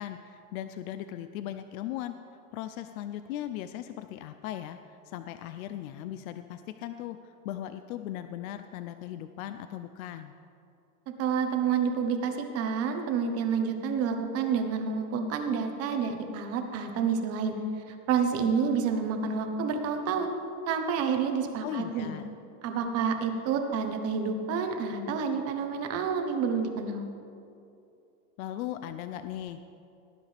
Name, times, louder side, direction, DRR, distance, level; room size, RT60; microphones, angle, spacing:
voice 1, 0.0-2.1 2.5-10.3 21.6-22.3 28.4-29.7, left 12 dB, 75° left, 10 dB, 0.7 m, -38 dB
voice 2, 11.2-17.6 17.9-20.3 20.7-22.1 22.6-27.1, right 6 dB, 35° right, 5 dB, 1.2 m, -29 dB
18.5 x 9.9 x 3.4 m, 2.6 s
supercardioid pair, 155°, 43 cm